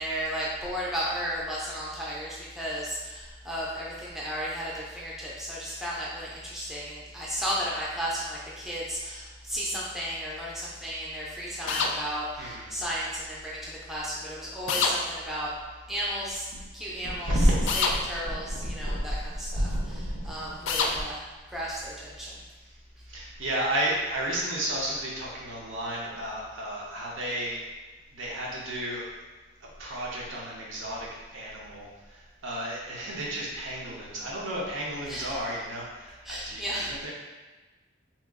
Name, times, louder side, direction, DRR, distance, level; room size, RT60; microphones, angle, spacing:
voice 1, 0.0-15.5 15.9-16.5 16.7-17.4 17.7-21.2 21.5-22.4 35.0-35.3 36.2-36.9, equal, ahead, -7 dB, 0.4 m, -34 dB
sound 1, 11.7-11.9 14.7-15.0 17.7-17.9 20.7-20.9, left 5 dB, 80° left, 0.3 m, -25 dB
voice 2, 17.2-18.0 18.2-19.0 19.6-21.0 23.1-27.6 28.1-29.1 29.8-31.1 31.3-37.1, right 1 dB, 80° right, -4 dB, 0.8 m, -31 dB
2.8 x 2.3 x 3.5 m, 1.3 s
head